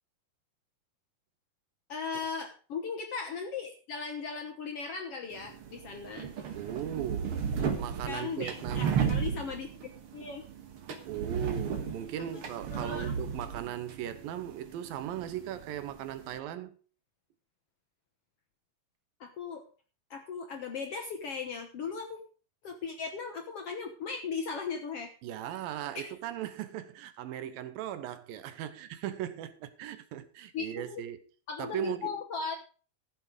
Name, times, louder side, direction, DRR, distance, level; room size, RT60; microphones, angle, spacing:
voice 1, 1.9-6.3 8.1-10.5 12.3-13.1 19.2-19.6 20.1-22.2 22.6-25.1 25.9-26.1 30.5-31.0 31.5-32.6, left 5 dB, 65° left, 1.5 m, -38 dB
sound 1, 5.3-16.4, right 7 dB, 55° right, 1.7 m, -35 dB
voice 2, 6.5-7.4 7.8-9.0 9.3-9.5 11.1-16.8 25.2-31.2 31.6-32.2, right 11 dB, 85° right, 2.7 m, -38 dB
14.5 x 7.2 x 4.9 m
omnidirectional pair, 4.1 m